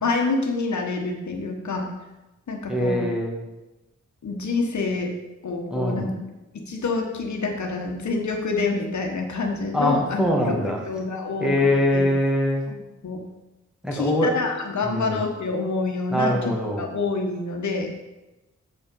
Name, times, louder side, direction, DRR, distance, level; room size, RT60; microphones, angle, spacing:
voice 1, 0.0-1.8 2.5-3.0 4.2-5.1 5.4-6.1 6.7-12.1 12.7-12.8 13.0-13.2 13.9-17.9, left 3 dB, 75° left, 2 dB, 1.2 m, -27 dB
voice 2, 2.7-3.4 5.7-6.1 9.7-10.8 11.4-12.6 13.8-14.3 14.8-15.2 16.1-16.9, left 1 dB, 5° right, -2 dB, 1.8 m, -23 dB
7.2 x 5.4 x 5.4 m, 1.0 s
wide cardioid pair, 90°, 29 cm